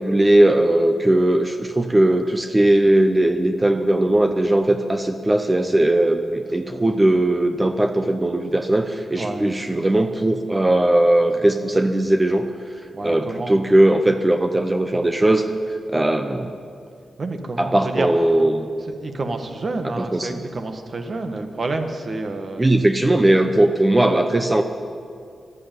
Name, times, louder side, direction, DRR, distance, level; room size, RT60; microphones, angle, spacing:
voice 1, 0.0-12.5 13.0-15.5 15.9-16.6 17.6-18.7 20.0-20.4 22.6-24.6, right 1 dB, 20° right, 6 dB, 0.8 m, -18 dB
voice 2, 9.2-9.6 12.9-13.5 17.2-18.1 18.9-22.6, right 2 dB, 50° right, 6 dB, 1.6 m, -29 dB
12.5 x 11.0 x 9.3 m, 2.3 s
cardioid pair, 65°, 0 cm